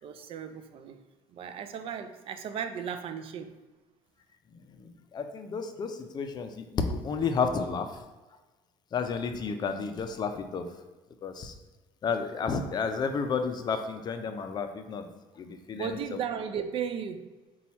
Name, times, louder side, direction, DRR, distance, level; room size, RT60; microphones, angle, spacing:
voice 1, 0.0-1.0 1.3-3.5 15.5-17.3, right 7 dB, 55° right, 9 dB, 0.4 m, -36 dB
voice 2, 4.5-7.9 8.9-10.7 11.2-11.5 12.0-15.1 15.4-16.0, left 5 dB, 40° left, 6 dB, 0.4 m, -31 dB
4.2 x 2.3 x 4.1 m, 1.2 s
cardioid pair, 105°, 11 cm